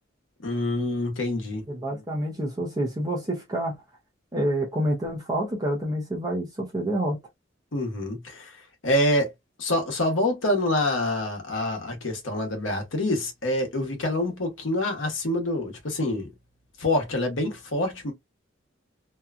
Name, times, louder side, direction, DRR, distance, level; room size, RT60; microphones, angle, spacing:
voice 1, 0.4-1.6 7.7-8.6 8.8-9.3 9.6-16.3 16.8-18.1, left 1 dB, 75° left, 1.1 m, -26 dB
voice 2, 1.7-3.7 4.3-7.2, right 1 dB, 20° right, 0.7 m, -28 dB
2.8 x 2.3 x 2.4 m
head